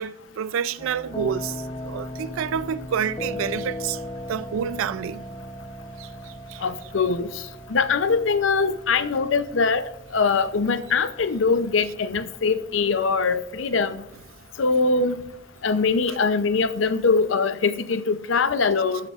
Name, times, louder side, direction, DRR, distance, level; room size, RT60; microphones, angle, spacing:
voice 1, 0.0-1.6 1.8-4.0 4.3-5.3 6.0-6.6, right 7 dB, 90° right, 0.4 m, -28 dB
sound 1, 0.8-17.3, left 1 dB, 25° left, 0.6 m, -39 dB
voice 2, 6.6-7.4 7.7-14.0 14.6-15.2 15.6-19.1, left 4 dB, 75° left, 0.6 m, -22 dB
13.5 x 11.0 x 2.4 m
head